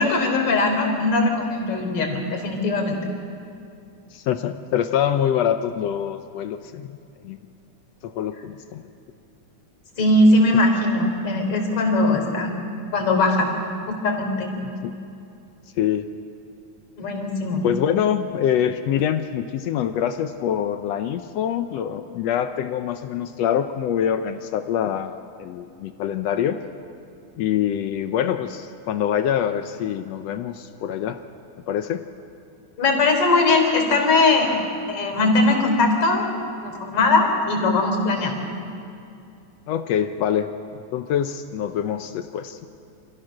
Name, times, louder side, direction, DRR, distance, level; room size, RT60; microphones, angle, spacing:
voice 1, 0.0-3.0 10.0-12.6 12.9-13.5 13.9-14.5 17.0-17.7 32.8-34.6 34.9-36.3 36.6-38.4, left 2 dB, 50° left, 2 dB, 4.7 m, -20 dB
voice 2, 4.1-6.9 7.2-7.4 8.0-8.8 10.5-10.6 14.8-14.9 15.8-16.1 17.6-26.6 27.4-31.2 31.7-32.1 39.7-40.5 40.9-42.7, left 9 dB, 75° left, 9 dB, 1.6 m, -25 dB
27.0 x 15.0 x 6.4 m, 2.5 s
omnidirectional pair, 3.5 m